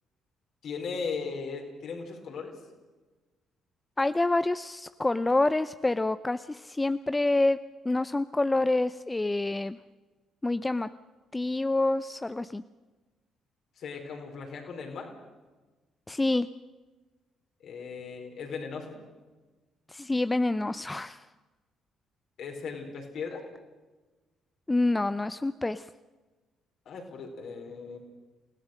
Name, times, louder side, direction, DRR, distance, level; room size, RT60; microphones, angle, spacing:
voice 1, 0.6-2.6 13.8-15.1 17.6-19.0 22.4-23.5 26.8-28.0, left 5 dB, 60° left, 3 dB, 4.6 m, -37 dB
voice 2, 4.0-7.6 7.8-9.8 10.4-10.9 11.3-12.6 16.1-16.5 19.9-21.2 24.7-25.8, left 2 dB, 20° left, 13 dB, 0.7 m, -27 dB
27.5 x 17.0 x 6.6 m, 1.2 s
hypercardioid pair, 45°, 0 cm